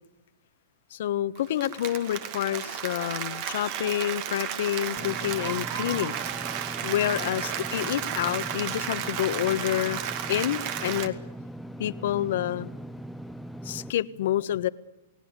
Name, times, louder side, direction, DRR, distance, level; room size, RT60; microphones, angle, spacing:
voice 1, 0.9-6.2 6.8-10.0 10.3-11.1 11.8-12.7 13.6-14.7, left 12 dB, 65° left, 15 dB, 1.1 m, -28 dB
Applause, 1.4-11.1, right 9 dB, 45° right, 2.2 m, -33 dB
Engine / Mechanisms, 5.0-13.9, right 1 dB, ahead, 0.8 m, -40 dB
29.0 x 18.0 x 8.2 m, 0.98 s
hypercardioid pair, 140°, 0 cm